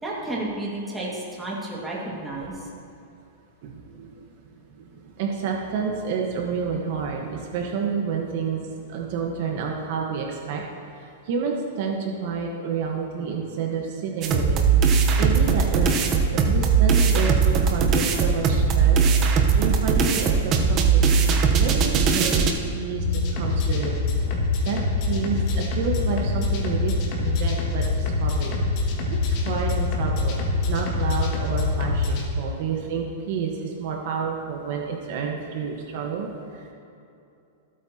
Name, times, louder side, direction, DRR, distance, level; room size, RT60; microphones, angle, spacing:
voice 1, 0.0-2.5, right 2 dB, 5° right, -5 dB, 2.0 m, -31 dB
voice 2, 3.6-4.2 5.2-10.6 11.3-14.6 15.2-19.0 19.6-20.3 20.7-21.1 21.6-24.0 24.6-24.8 25.1-28.5 29.3-30.4 30.7-36.3 36.5-36.7, right 5 dB, 45° right, 0 dB, 1.2 m, -29 dB
sound 1, 14.2-22.5, right 5 dB, 25° right, 0.9 m, -19 dB
sound 2, 22.9-32.2, left 3 dB, 35° left, 1.9 m, -25 dB
25.0 x 8.6 x 2.9 m, 2.7 s
supercardioid pair, 170°, 0 cm